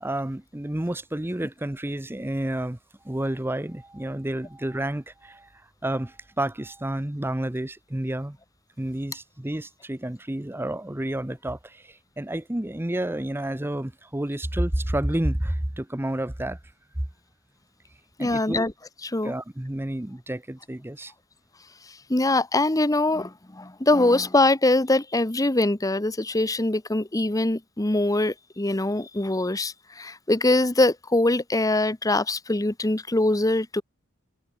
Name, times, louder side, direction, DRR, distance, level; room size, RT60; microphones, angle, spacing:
voice 1, 0.0-2.8 3.0-5.5 5.8-8.4 8.8-16.6 17.0-17.1 18.2-18.6 19.2-21.1, right 1 dB, 10° right, 0.7 m, -30 dB
voice 2, 18.2-18.7 19.0-19.3 21.8-33.8, left 2 dB, 15° left, 0.9 m, -23 dB
head